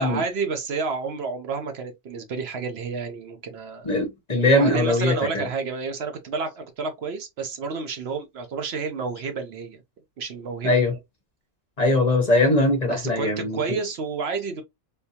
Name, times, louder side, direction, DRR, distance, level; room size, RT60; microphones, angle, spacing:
voice 1, 0.0-3.9 4.6-9.8 10.2-11.0 12.9-14.6, right 4 dB, 65° right, 0.9 m, -30 dB
voice 2, 3.8-5.4 10.6-10.9 11.8-13.8, left 2 dB, 35° left, 1.0 m, -21 dB
3.6 x 2.6 x 2.7 m
omnidirectional pair, 1.2 m